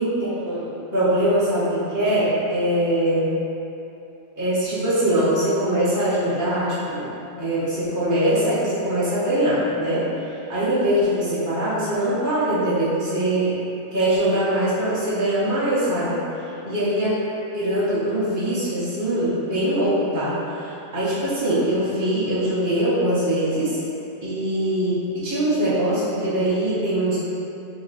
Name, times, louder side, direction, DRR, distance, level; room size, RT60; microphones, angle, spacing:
voice 1, 0.0-3.3 4.4-7.1 7.4-13.6 13.9-17.2 17.5-23.8 24.2-27.2, right 1 dB, 20° right, -11 dB, 0.6 m, -22 dB
3.0 x 2.8 x 4.0 m, 2.8 s
omnidirectional pair, 1.3 m